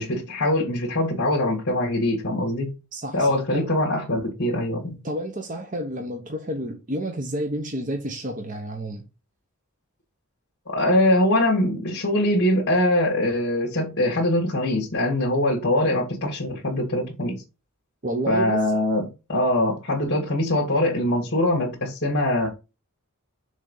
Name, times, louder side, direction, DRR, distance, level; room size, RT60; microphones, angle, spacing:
voice 1, 0.0-2.7 3.1-5.0 10.7-17.4 18.3-22.5, left 1 dB, 50° left, 2.0 m, -23 dB
voice 2, 2.9-3.7 5.0-9.0 18.0-18.6, right 1 dB, 35° right, 1.0 m, -30 dB
6.4 x 3.7 x 5.4 m
head